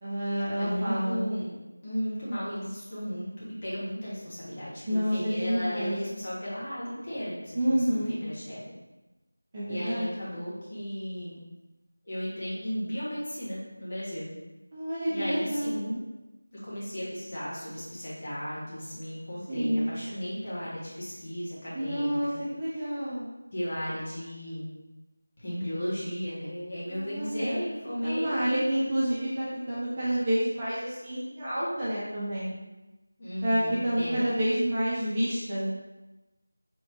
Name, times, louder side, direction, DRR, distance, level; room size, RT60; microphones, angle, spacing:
voice 1, 0.0-1.2 4.9-6.0 7.5-8.1 9.5-10.1 14.7-15.7 19.5-19.9 21.7-23.3 26.9-27.6 28.0-32.5 33.4-35.7, equal, 20° right, -9 dB, 0.8 m, -29 dB
voice 2, 0.6-1.5 1.8-8.6 9.6-11.4 12.0-14.3 15.1-16.0 16.6-22.4 22.7-22.9 23.5-24.7 25.4-28.7 33.2-34.2, equal, 30° left, -9 dB, 1.4 m, -35 dB
4.3 x 3.2 x 2.7 m, 1.1 s
figure-of-eight pair, 170°, 0 cm